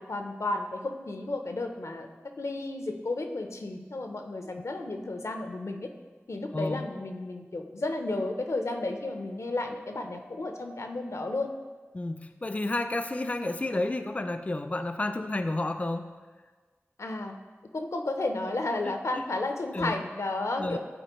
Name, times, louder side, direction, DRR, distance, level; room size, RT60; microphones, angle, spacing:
voice 1, 0.0-2.1 2.4-5.9 6.3-11.5 13.2-13.4 17.0-17.4 17.7-20.8, left 2 dB, 85° left, 5 dB, 0.6 m, -33 dB
voice 2, 6.5-6.9 11.9-16.1 19.7-19.9 20.6-20.8, left 2 dB, 30° left, 8 dB, 0.3 m, -31 dB
10.0 x 4.1 x 3.0 m, 1.4 s
wide cardioid pair, 50°, 5 cm